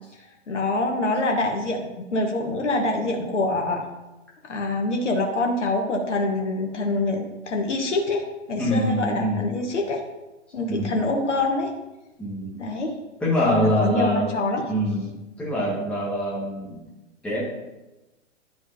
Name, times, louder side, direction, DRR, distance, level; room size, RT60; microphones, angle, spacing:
voice 1, 0.5-3.9 4.4-10.0 10.5-11.7 12.5-12.9 13.4-14.6, left 2 dB, 70° left, 2 dB, 1.2 m, -25 dB
voice 2, 8.6-9.5 10.7-11.0 12.2-12.6 13.2-14.3 14.7-16.8 17.2-17.4, equal, 5° left, -7 dB, 1.7 m, -24 dB
10.5 x 4.7 x 2.8 m, 1.0 s
figure-of-eight pair, 115°, 37 cm